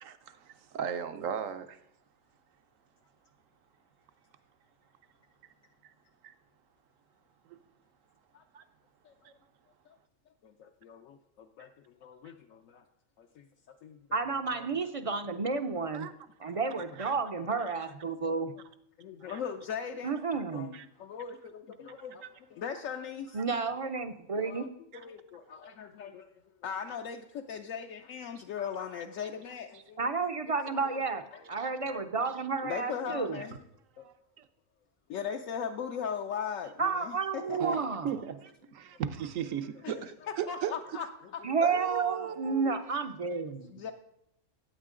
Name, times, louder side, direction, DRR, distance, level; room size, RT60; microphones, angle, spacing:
voice 1, 0.0-1.8 5.8-5.9 6.2-6.3 7.5-7.6 8.5-8.6 9.2-9.3 15.9-16.1 17.0-17.1 19.3-19.4 20.7-20.9 31.6-31.7 34.0-34.5 37.6-40.7 41.6-42.8, right 8 dB, 80° right, 1.1 m, -37 dB
voice 2, 10.4-12.8 13.2-14.7 17.4-17.6 19.0-23.7 24.4-24.7 24.9-30.2 30.7-31.5 31.8-33.6 34.0-34.1 35.1-37.7 39.8-41.8 43.7-43.9, left 7 dB, 80° left, 1.1 m, -40 dB
voice 3, 14.1-16.1 16.4-18.5 20.0-20.7 23.3-24.6 30.0-31.2 31.5-33.4 36.8-38.2 41.4-43.7, right 4 dB, 45° right, 0.4 m, -31 dB
14.0 x 8.9 x 3.7 m
omnidirectional pair, 1.4 m